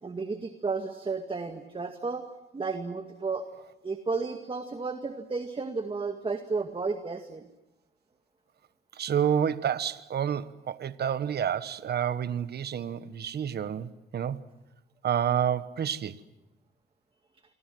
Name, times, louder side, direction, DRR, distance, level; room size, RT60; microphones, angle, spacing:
voice 1, 0.0-2.3 2.5-3.5 3.8-7.5, right 4 dB, 25° right, 2.0 m, -33 dB
voice 2, 9.0-14.4 15.0-16.1, right 9 dB, 55° right, 1.2 m, -29 dB
27.5 x 24.0 x 7.8 m
cardioid pair, 90°, 20 cm